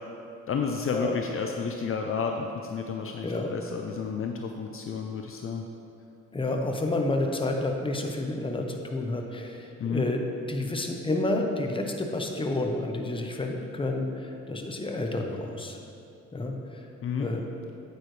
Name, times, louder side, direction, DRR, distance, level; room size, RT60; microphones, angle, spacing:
voice 1, 0.5-5.6 9.8-10.1 17.0-17.3, left 5 dB, 45° left, 3 dB, 0.6 m, -31 dB
voice 2, 6.3-10.2 10.5-15.8 16.3-16.8 17.2-17.4, left 2 dB, 15° left, 2 dB, 0.9 m, -30 dB
8.7 x 8.5 x 3.3 m, 2.6 s
cardioid pair, 90°, 30 cm